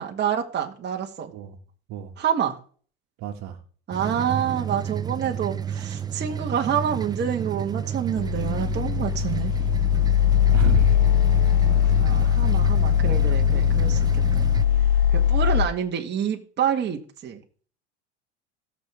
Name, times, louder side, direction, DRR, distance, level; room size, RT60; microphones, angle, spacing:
voice 1, 0.0-1.3 2.2-2.6 3.9-9.7 11.6-14.2 15.1-17.4, right 8 dB, 30° right, 2 dB, 1.8 m, -28 dB
voice 2, 3.2-3.6 10.5-11.1 12.3-12.5 13.1-13.3, right 9 dB, 50° right, 5 dB, 1.9 m, -32 dB
washing machine, 3.9-14.6, right 8 dB, 10° right, 0.5 m, -31 dB
sound 1, 8.2-15.7, left 11 dB, 55° left, 1.0 m, -20 dB
17.5 x 6.7 x 3.6 m, 0.43 s
hypercardioid pair, 100°, 35 cm